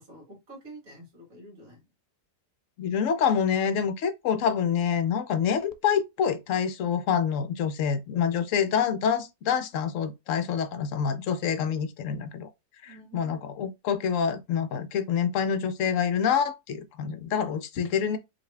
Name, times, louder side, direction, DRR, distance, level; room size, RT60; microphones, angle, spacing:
voice 1, 0.0-1.8 12.9-13.4, right 1 dB, 55° right, 1.8 m, -48 dB
voice 2, 2.8-12.5 12.8-18.2, left 7 dB, 65° left, 0.9 m, -27 dB
5.1 x 2.7 x 3.2 m
omnidirectional pair, 1.8 m